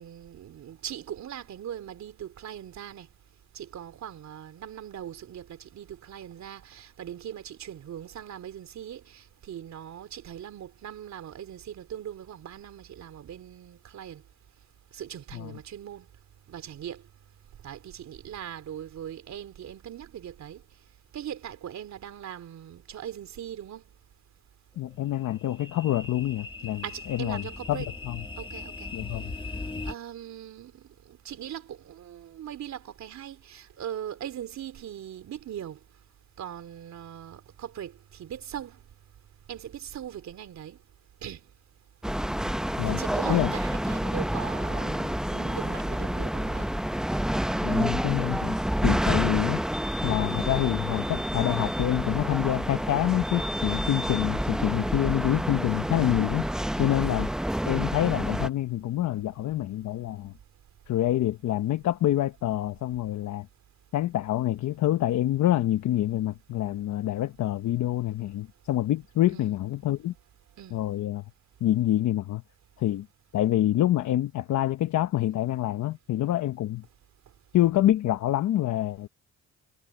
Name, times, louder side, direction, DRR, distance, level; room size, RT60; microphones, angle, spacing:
voice 1, 0.0-3.1 3.5-14.2 14.9-16.1 16.5-17.0 17.6-20.6 21.1-23.8 26.8-27.9 28.4-28.9 29.9-35.8 36.4-38.8 39.5-40.8 41.2-41.4 42.9-46.7 56.7-57.0 69.3-69.6 70.6-70.8, right 10 dB, 65° right, 3.1 m, -40 dB
voice 2, 24.8-26.8 27.1-28.2 28.9-29.3 42.8-43.0 43.3-43.5 47.6-48.6 48.8-49.6 50.0-56.5 56.8-57.3 57.7-60.3 60.9-63.5 63.9-70.1 70.7-71.2 71.6-72.4 72.8-73.1 73.3-76.8 77.5-79.1, left 13 dB, 70° left, 1.0 m, -26 dB
sound 1, 24.9-29.9, left 3 dB, 15° left, 2.2 m, -39 dB
sound 2, 42.0-58.5, equal, ahead, 0.7 m, -28 dB
cardioid pair, 90°, 30 cm